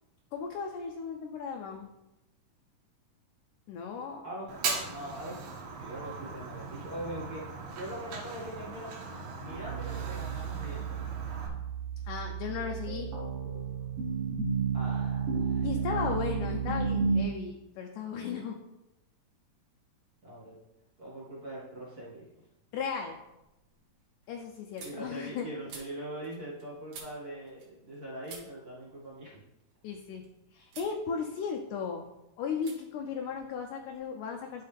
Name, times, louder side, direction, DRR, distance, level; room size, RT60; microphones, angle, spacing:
voice 1, 0.3-1.9 3.7-4.3 12.1-13.1 15.6-18.6 22.7-23.2 24.3-25.5 29.8-30.2 30.5-32.1 32.4-34.6, left 6 dB, 75° left, 2 dB, 2.1 m, -36 dB
voice 2, 4.2-9.0 9.4-11.0 14.7-16.0 20.2-20.6 21.0-22.2 24.8-29.3, right 1 dB, 30° right, -8 dB, 2.2 m, -42 dB
Fire, 4.5-11.5, right 4 dB, 90° right, 3.1 m, -39 dB
sound 1, 9.5-17.2, right 5 dB, 45° right, 2.4 m, -32 dB
sound 2, 22.0-22.5 22.9-28.0 28.2-30.3 30.7-31.0 31.3-32.1 32.6-32.8 33.0-34.1, right 4 dB, 75° right, 3.1 m, -52 dB
12.0 x 4.7 x 3.5 m, 0.93 s
omnidirectional pair, 3.9 m